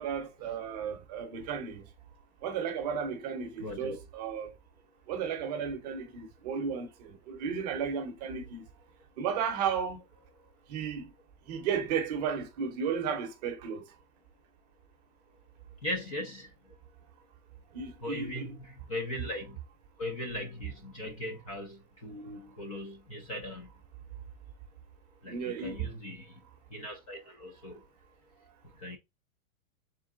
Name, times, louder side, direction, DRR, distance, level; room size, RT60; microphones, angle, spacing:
voice 1, 0.0-1.8 2.4-4.5 5.1-8.6 9.2-10.0 10.7-11.1 11.5-13.9 17.7-18.5 25.2-25.8, right 7 dB, 30° right, 0.7 m, -34 dB
voice 2, 3.6-4.0 15.8-16.5 18.0-19.6 20.0-23.7 25.2-26.3 26.7-27.8 28.8-29.0, left 1 dB, 25° left, 0.4 m, -39 dB
3.8 x 3.1 x 3.5 m
supercardioid pair, 165°, 42 cm